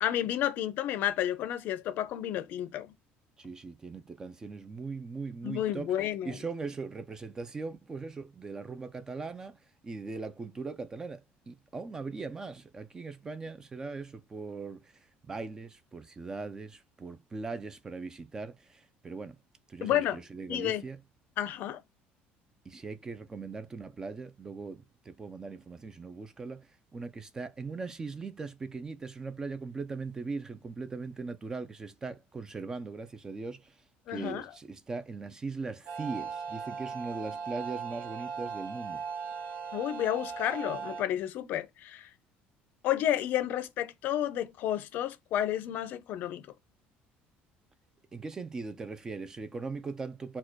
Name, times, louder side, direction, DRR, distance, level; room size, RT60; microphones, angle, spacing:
voice 1, 0.0-2.9 5.4-6.4 19.8-20.2 20.5-20.8 21.4-21.8 34.1-34.5 39.7-42.1 42.8-46.4, left 11 dB, 50° left, 0.5 m, -31 dB
voice 2, 3.4-5.9 6.2-14.9 15.2-19.4 19.7-21.0 22.7-33.8 34.1-39.0 48.1-50.4, right 4 dB, 15° right, 0.3 m, -40 dB
sound 1, 35.9-41.0, right 6 dB, 45° right, 0.9 m, -38 dB
4.3 x 2.2 x 4.4 m
cardioid pair, 175°, 4 cm